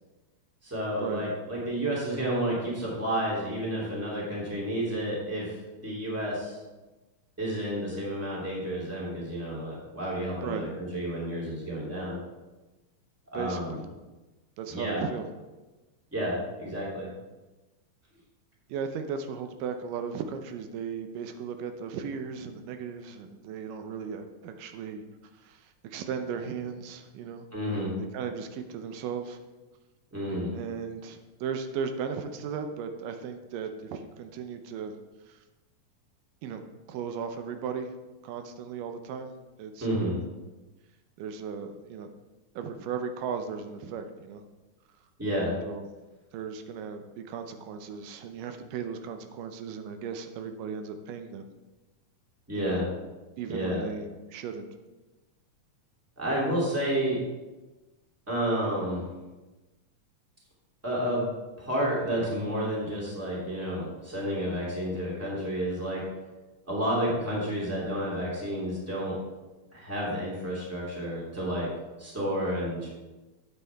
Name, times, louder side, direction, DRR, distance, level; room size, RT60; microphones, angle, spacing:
voice 1, 0.6-6.6 7.4-12.2 13.3-13.8 14.7-15.0 16.1-17.1 27.5-27.9 30.1-30.5 39.8-40.2 45.2-45.5 52.5-52.8 53.5-53.8 56.2-57.2 58.3-59.0 60.8-61.2 61.6-66.0 66.7-69.2 69.7-71.7 72.0-72.9, equal, 5° right, -6 dB, 2.3 m, -30 dB
voice 2, 13.3-13.8 14.6-15.3 18.7-25.0 25.4-27.5 28.1-29.4 30.5-35.0 35.3-35.4 36.4-36.6 36.9-37.9 38.2-39.3 39.6-40.2 41.2-42.1 42.6-44.4 45.6-45.9 46.3-51.5 52.6-52.8 53.4-54.7, right 6 dB, 90° right, 7 dB, 2.4 m, -36 dB
9.6 x 8.3 x 3.5 m, 1.1 s
omnidirectional pair, 3.7 m